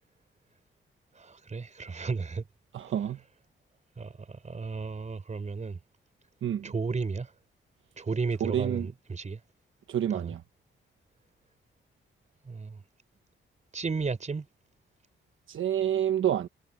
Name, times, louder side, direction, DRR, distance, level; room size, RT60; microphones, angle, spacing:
voice 1, 1.1-2.4 4.0-5.8 6.6-7.3 8.0-9.4 10.1-10.3 12.4-12.8 13.7-14.5, right 4 dB, 35° right, 4.9 m, -33 dB
voice 2, 2.7-3.2 6.4-6.7 8.4-8.9 9.9-10.4 15.5-16.5, right 10 dB, 75° right, 1.2 m, -28 dB
cardioid pair, 105°, 21 cm